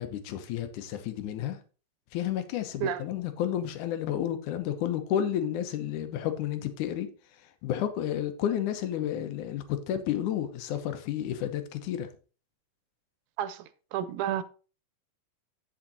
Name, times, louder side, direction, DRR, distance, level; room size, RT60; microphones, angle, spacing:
voice 1, 0.0-1.6 2.1-7.1 7.6-12.1, left 10 dB, 80° left, 2.4 m, -31 dB
voice 2, 13.9-14.4, right 10 dB, 85° right, 2.1 m, -30 dB
8.9 x 5.8 x 4.0 m
omnidirectional pair, 3.6 m